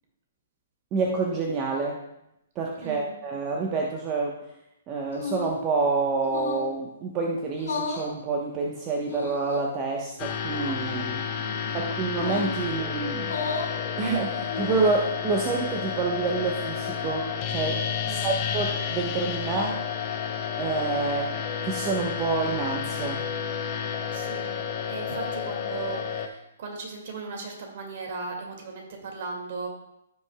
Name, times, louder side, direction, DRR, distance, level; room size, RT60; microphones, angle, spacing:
voice 1, 0.9-2.0 2.6-4.4 4.9-11.2 11.7-13.3 14.0-19.8 20.6-21.4 21.6-23.2, right 4 dB, 30° right, 0 dB, 1.0 m, -28 dB
voice 2, 2.8-3.1 11.4-11.8 18.0-18.4 24.1-24.5 24.9-29.7, right 4 dB, 55° right, 1 dB, 2.1 m, -37 dB
sound 1, 5.1-5.6 6.2-6.7 7.5-8.1 9.0-9.6 10.4-10.8 12.1-12.6 13.2-13.7 14.4-15.0, left 4 dB, 70° left, 1.7 m, -33 dB
sound 2, 10.2-26.3, left 7 dB, 35° left, 0.9 m, -31 dB
16.0 x 5.5 x 2.3 m, 0.83 s
figure-of-eight pair, 125°, 0 cm